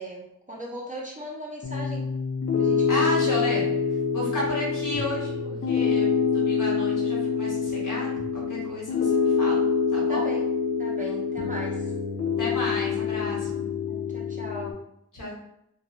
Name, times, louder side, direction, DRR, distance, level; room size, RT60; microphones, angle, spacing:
voice 1, 0.0-2.1 2.6-3.1 10.1-10.4 10.8-11.8 13.9-14.8, right 1 dB, 25° right, -4 dB, 0.6 m, -38 dB
Piano, 1.6-14.7, left 6 dB, 50° left, 0.6 m, -26 dB
voice 2, 2.9-3.6 4.1-9.6 9.9-10.2 12.4-13.6 15.1-15.3, left 1 dB, 75° left, -5 dB, 1.3 m, -32 dB
2.6 x 2.2 x 3.0 m, 0.78 s
wide cardioid pair, 70°, 31 cm